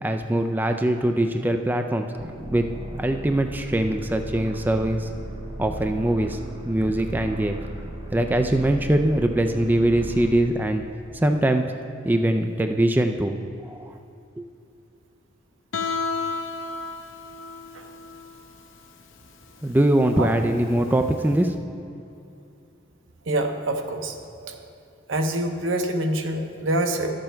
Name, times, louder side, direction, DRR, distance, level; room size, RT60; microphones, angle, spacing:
voice 1, 0.0-2.1 2.5-2.7 3.0-5.1 5.6-6.4 6.6-7.6 8.1-10.8 11.1-11.6 12.0-13.4 13.6-13.9 14.4-14.5 19.6-21.6, right 1 dB, 10° right, 5 dB, 0.3 m, -22 dB
sound 1, 2.2-10.4, right 1 dB, 25° right, 0.8 m, -36 dB
Guitar, 15.7-21.4, left 4 dB, 85° left, 0.7 m, -33 dB
voice 2, 23.3-24.6 25.1-27.1, right 1 dB, 80° right, 5 dB, 0.8 m, -26 dB
11.5 x 7.5 x 4.5 m, 2.7 s
head